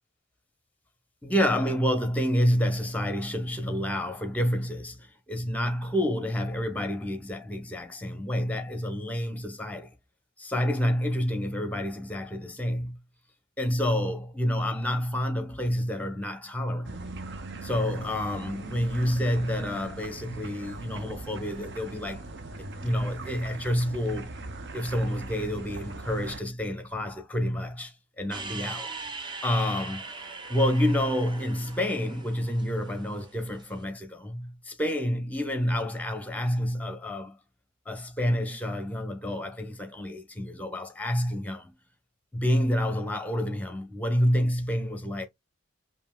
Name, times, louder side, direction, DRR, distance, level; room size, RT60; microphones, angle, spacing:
voice 1, 1.2-9.9 10.4-13.0 13.6-16.9 17.6-22.2 22.6-24.3 24.7-28.9 29.4-30.1 30.5-37.4 37.9-41.7 42.3-45.3, equal, 10° left, 0.8 m, -28 dB
sound 1, 16.8-26.4, right 2 dB, 60° right, 0.7 m, -40 dB
sound 2, 28.3-33.7, right 4 dB, 25° right, 0.7 m, -41 dB
5.3 x 2.7 x 2.3 m
head